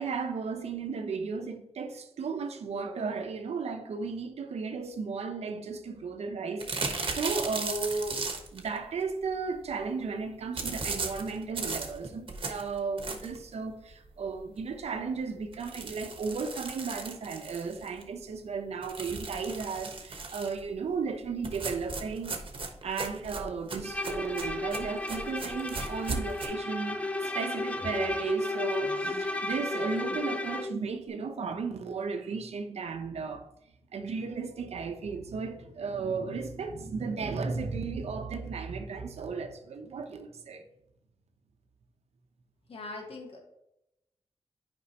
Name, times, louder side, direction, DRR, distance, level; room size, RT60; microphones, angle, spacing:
voice 1, 0.0-8.2 8.5-22.4 22.8-33.5 33.9-40.6, right 4 dB, 90° right, 0.8 m, -35 dB
sound 1, 6.6-8.7 10.6-13.5 13.9-14.0 14.4-14.5 14.7-14.8 15.5-18.0 18.8-20.6 21.4-26.5, right 3 dB, 55° right, 1.2 m, -37 dB
Bowed string instrument, 23.8-30.8, left 2 dB, 15° left, 0.6 m, -33 dB
voice 2, 42.7-43.4, left 3 dB, 65° left, 1.7 m, -41 dB
8.3 x 5.2 x 2.9 m
cardioid pair, 70°, 11 cm